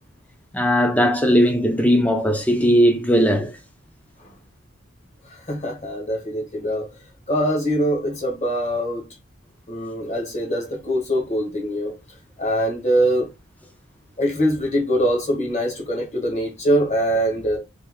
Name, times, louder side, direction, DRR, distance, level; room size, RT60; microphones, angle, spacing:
voice 1, 0.5-3.5, equal, 5° left, 0.5 m, -18 dB
voice 2, 5.2-6.9 7.3-9.0 9.7-11.9 12.4-13.3 14.2-17.6, equal, 35° left, 1.4 m, -23 dB
3.4 x 2.9 x 3.5 m
head